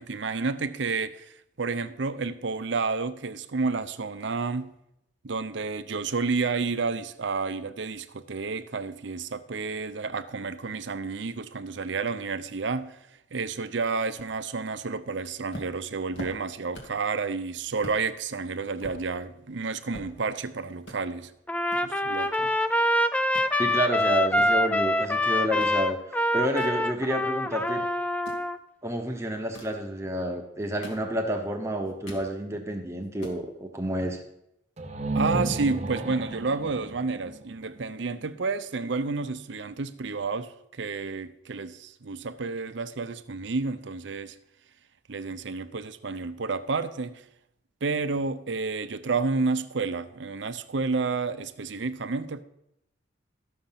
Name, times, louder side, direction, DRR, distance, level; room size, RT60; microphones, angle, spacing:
voice 1, 0.0-4.7 5.2-13.0 13.3-21.3 21.8-22.5 35.1-44.4 45.1-47.2 47.8-52.4, right 4 dB, 70° right, 0.6 m, -30 dB
sound 1, 15.5-17.1 17.4-17.5 17.8-18.0 18.5-20.5 20.8-21.0 21.7-22.9 23.1-23.5 24.1-25.8 26.2-27.5 28.1-28.5 29.3-29.8 30.5-31.4 31.8-32.3 32.7-32.8 33.0-33.4, equal, 75° left, 2.4 m, -44 dB
Trumpet, 21.5-28.6, left 1 dB, 5° left, 0.4 m, -25 dB
voice 2, 23.6-26.0 26.3-27.9 28.8-34.2, right 1 dB, 15° right, 1.0 m, -29 dB
sound 2, 34.8-38.5, right 2 dB, 35° right, 0.8 m, -32 dB
13.0 x 6.6 x 5.8 m
head